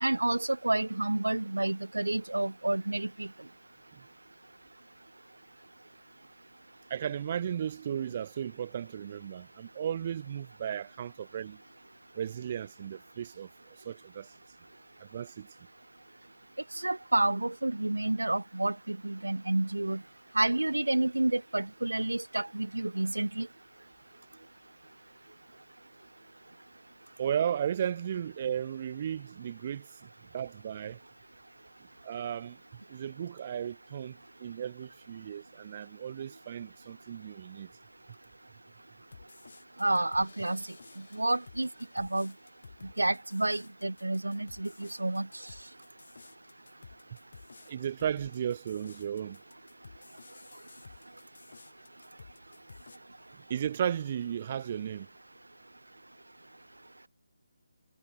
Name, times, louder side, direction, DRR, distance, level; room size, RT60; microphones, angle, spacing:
voice 1, 0.0-3.3 16.8-20.0 20.3-23.5 39.8-40.6 41.1-41.7 42.0-42.3 43.0-45.3, right 2 dB, 85° right, 0.6 m, -29 dB
voice 2, 6.9-11.6 12.1-13.5 13.8-14.3 15.0-15.5 27.2-31.0 32.0-32.6 32.9-37.7 47.7-49.4 53.3-55.1, right 9 dB, 35° right, 0.7 m, -35 dB
sound 1, 39.1-53.0, left 4 dB, 60° left, 6.4 m, -54 dB
figure-of-eight pair, 150°, 0 cm